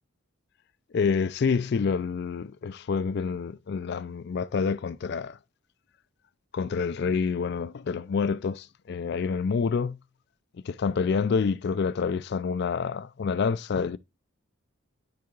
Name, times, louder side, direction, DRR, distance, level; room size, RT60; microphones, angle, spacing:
voice 1, 0.9-5.4 6.5-10.0 10.6-14.0, left 5 dB, 50° left, 0.3 m, -27 dB
12.0 x 4.8 x 2.3 m
head